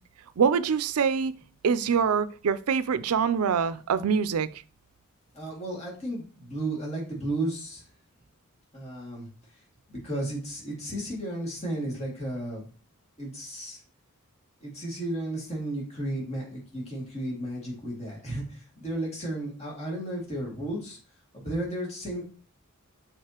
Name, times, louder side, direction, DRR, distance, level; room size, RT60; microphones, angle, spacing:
voice 1, 0.4-1.3 1.6-4.5, right 6 dB, 80° right, 0.4 m, -24 dB
voice 2, 5.3-7.8 8.7-9.3 9.9-12.6 13.2-13.8 14.6-21.0 21.3-22.2, right 1 dB, 30° left, 2.2 m, -33 dB
6.6 x 4.9 x 2.9 m
head